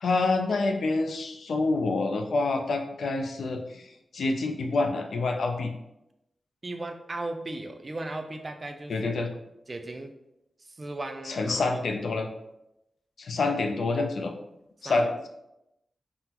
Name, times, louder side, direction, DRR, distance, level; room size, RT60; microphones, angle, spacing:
voice 1, 0.0-3.8 4.1-5.7 8.9-9.3 11.3-12.3 13.2-14.3 14.8-15.3, left 3 dB, 75° left, 5 dB, 0.4 m, -27 dB
voice 2, 6.6-9.3 9.7-10.1 10.6-11.6 14.8-15.3, right 2 dB, 30° right, 6 dB, 0.3 m, -37 dB
3.6 x 2.0 x 2.8 m, 0.87 s
wide cardioid pair, 120°, 0 cm